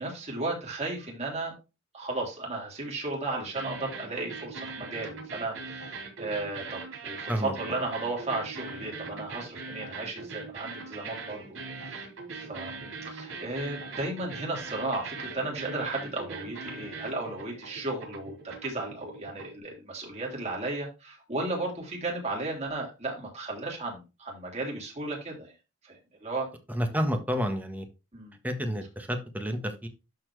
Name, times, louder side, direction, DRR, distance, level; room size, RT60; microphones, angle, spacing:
voice 1, 0.0-1.5 1.9-25.5 25.9-26.5 28.1-28.4, right 2 dB, 35° right, 3.5 m, -35 dB
sound 1, 3.4-19.6, right 4 dB, 80° right, 5.0 m, -41 dB
voice 2, 26.7-27.9 28.4-29.9, equal, 10° right, 1.4 m, -30 dB
12.5 x 4.5 x 3.4 m
head